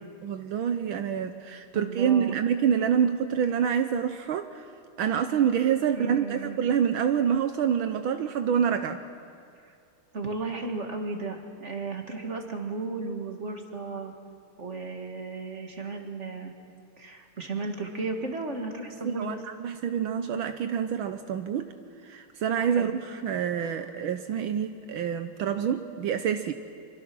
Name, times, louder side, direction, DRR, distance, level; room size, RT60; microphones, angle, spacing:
voice 1, 0.2-4.6 5.0-9.0 19.0-21.7 22.0-26.5, right 8 dB, 70° right, 8 dB, 1.5 m, -27 dB
voice 2, 1.7-2.4 5.9-6.6 10.1-14.1 14.6-16.5 17.0-19.4 22.7-23.0, right 3 dB, 35° right, 3 dB, 2.1 m, -34 dB
25.0 x 24.0 x 6.2 m, 2.3 s
omnidirectional pair, 2.4 m